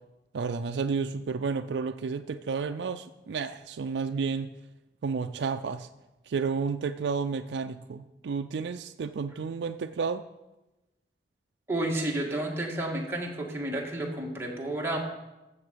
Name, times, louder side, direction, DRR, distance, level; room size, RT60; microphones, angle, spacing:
voice 1, 0.3-4.5 5.0-5.9 6.3-10.2, right 5 dB, 80° right, 7 dB, 0.4 m, -31 dB
voice 2, 11.7-15.0, right 1 dB, 15° right, -2 dB, 1.7 m, -31 dB
14.0 x 6.8 x 5.1 m, 1.0 s
head